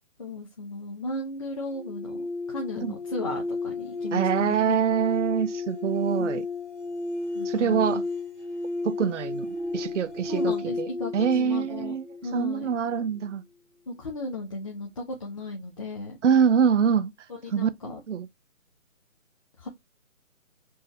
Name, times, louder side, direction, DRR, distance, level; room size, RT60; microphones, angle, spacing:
voice 1, 0.2-4.8 6.2-6.4 7.3-8.0 10.3-11.9 12.2-12.7 13.9-16.2 17.3-18.0 19.6-19.7, left 2 dB, 25° left, 0.7 m, -35 dB
sound 1, 1.7-12.7, left 3 dB, 5° left, 1.1 m, -33 dB
voice 2, 4.1-6.4 7.4-8.0 8.8-10.9 11.1-12.0 12.3-13.4 16.2-17.1 17.5-17.7 18.1-18.3, right 7 dB, 60° right, 0.6 m, -24 dB
4.5 x 2.6 x 3.1 m
figure-of-eight pair, 155°, 41 cm